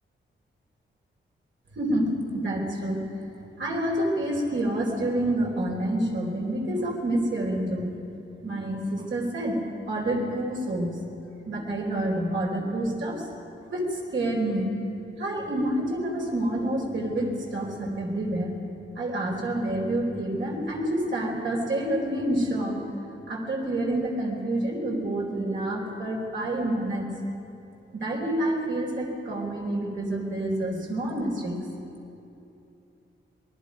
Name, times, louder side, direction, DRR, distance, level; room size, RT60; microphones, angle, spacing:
voice 1, 1.8-3.0 3.6-7.9 8.4-9.6 9.9-11.0 11.5-13.3 13.7-14.7 15.2-18.5 19.0-22.8 23.3-27.1 27.9-31.6, right 1 dB, 70° right, -2 dB, 4.4 m, -28 dB
27.0 x 20.5 x 5.3 m, 2.8 s
wide cardioid pair, 115°, 20 cm